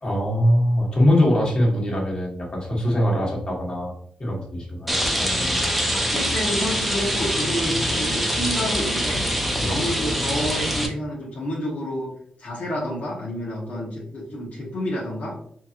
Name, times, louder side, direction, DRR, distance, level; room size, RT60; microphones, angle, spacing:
voice 1, 0.0-3.9 4.2-5.6 9.6-9.8, left 1 dB, 35° left, -3 dB, 1.5 m, -22 dB
Rain, 4.9-10.9, equal, 5° right, 0.7 m, -24 dB
voice 2, 5.8-9.2 9.6-12.1 12.4-15.3, equal, 65° left, -5 dB, 1.2 m, -29 dB
4.4 x 2.9 x 2.5 m, 0.64 s
cardioid pair, 75°, 3 cm